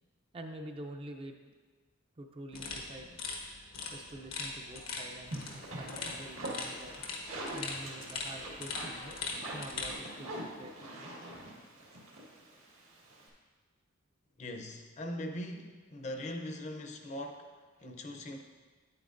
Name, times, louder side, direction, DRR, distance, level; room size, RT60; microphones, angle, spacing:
voice 1, 0.3-1.4 2.2-3.2 3.9-7.0 7.5-9.2 9.5-10.9, right 1 dB, 25° right, 4 dB, 0.5 m, -47 dB
sound 1, 2.5-10.0, left 3 dB, 85° left, 1.2 m, -41 dB
sound 2, 5.3-13.3, right 1 dB, 85° right, 1.6 m, -44 dB
voice 2, 14.4-18.4, left 1 dB, 35° left, 4 dB, 0.6 m, -41 dB
9.0 x 8.6 x 2.5 m, 1.4 s
head